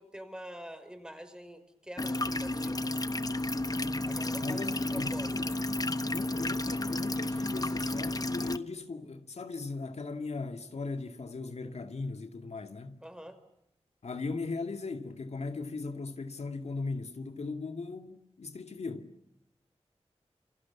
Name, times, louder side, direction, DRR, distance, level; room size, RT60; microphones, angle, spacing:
voice 1, 0.0-2.9 4.0-4.6 4.9-5.6 13.0-13.4, equal, 5° right, 5.6 m, -46 dB
sound 1, 2.0-8.6, left 2 dB, 35° left, 1.1 m, -32 dB
voice 2, 4.4-5.2 6.0-13.0 14.0-19.1, left 3 dB, 75° left, 2.3 m, -38 dB
28.5 x 27.5 x 7.3 m
wide cardioid pair, 75°, 11 cm